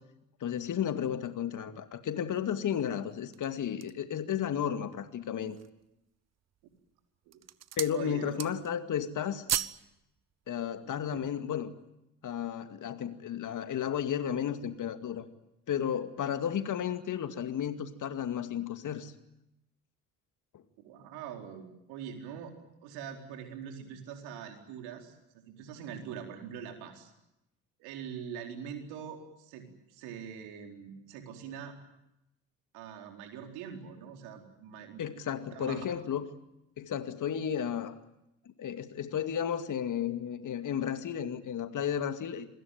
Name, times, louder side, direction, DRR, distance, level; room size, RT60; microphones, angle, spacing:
voice 1, 0.4-5.6 7.8-9.4 10.5-11.7 12.2-15.2 15.7-19.1 35.0-36.2 36.8-37.9 38.6-42.5, left 9 dB, 50° left, 9 dB, 2.3 m, -33 dB
sound 1, 3.1-4.1 4.7-4.8 5.3-5.8 6.5-6.9 7.2-8.0 8.3-8.8 9.1-9.8 10.2-10.3, right 10 dB, 40° right, 1.1 m, -35 dB
voice 2, 7.9-8.4 10.8-11.2 20.8-22.5 22.8-27.1 27.8-31.7 32.7-35.0 35.5-35.8, right 8 dB, 70° right, 3 dB, 4.4 m, -43 dB
27.0 x 21.5 x 9.2 m, 0.86 s
hypercardioid pair, 50°, 39 cm